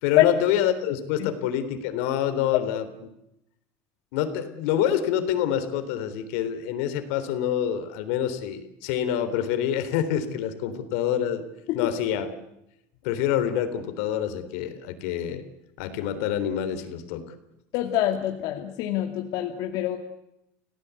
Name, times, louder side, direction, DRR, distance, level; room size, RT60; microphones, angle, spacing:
voice 1, 0.0-3.1 4.1-11.4 11.7-12.3 13.0-15.4 15.8-17.2, left 10 dB, 80° left, 10 dB, 3.6 m, -26 dB
voice 2, 17.7-20.0, left 13 dB, 65° left, 3 dB, 2.4 m, -25 dB
30.0 x 17.5 x 8.4 m, 0.86 s
cardioid pair, 145°, 7 cm